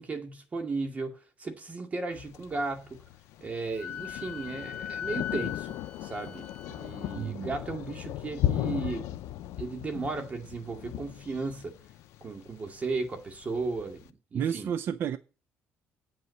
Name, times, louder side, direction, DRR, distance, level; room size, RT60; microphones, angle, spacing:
voice 1, 0.0-3.0 3.4-9.1 9.6-11.7 12.2-14.0 14.3-14.7, right 3 dB, 30° right, 2.4 m, -35 dB
Thunder, 2.1-14.1, left 13 dB, 85° left, 0.6 m, -37 dB
Wind instrument woodwind instrument, 3.8-7.2, left 9 dB, 20° left, 1.6 m, -39 dB
voice 2, 7.2-7.5 14.3-15.2, right 8 dB, 55° right, 0.6 m, -31 dB
8.8 x 5.6 x 7.8 m
cardioid pair, 115°, 5 cm